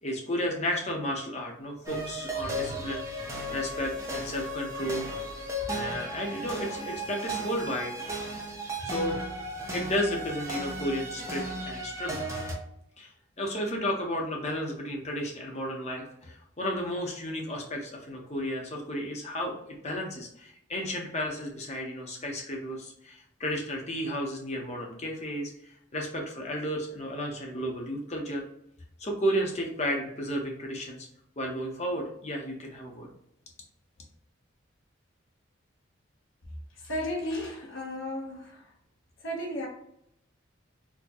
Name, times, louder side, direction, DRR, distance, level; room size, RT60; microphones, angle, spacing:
voice 1, 0.0-3.0 3.5-5.1 5.7-8.0 8.8-9.2 9.7-12.2 13.0-13.1 13.4-25.5 25.9-28.4 29.0-31.1 31.4-33.1, equal, 35° left, 0.7 m, -33 dB
sound 1, 1.8-12.5, right 1 dB, 15° right, 0.6 m, -35 dB
voice 2, 36.8-38.6 39.2-39.7, left 1 dB, 75° left, 0.9 m, -34 dB
4.4 x 2.2 x 2.8 m
head